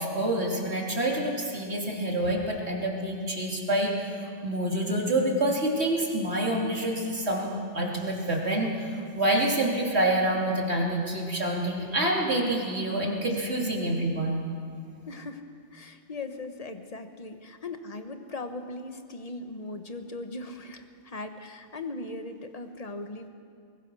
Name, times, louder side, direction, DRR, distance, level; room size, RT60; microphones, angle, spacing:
voice 1, 0.0-4.1 4.4-14.4, right 1 dB, 50° right, -2 dB, 3.2 m, -27 dB
voice 2, 15.1-23.3, left 2 dB, 30° left, 7 dB, 1.2 m, -39 dB
21.5 x 19.5 x 6.2 m, 2.3 s
omnidirectional pair, 1.4 m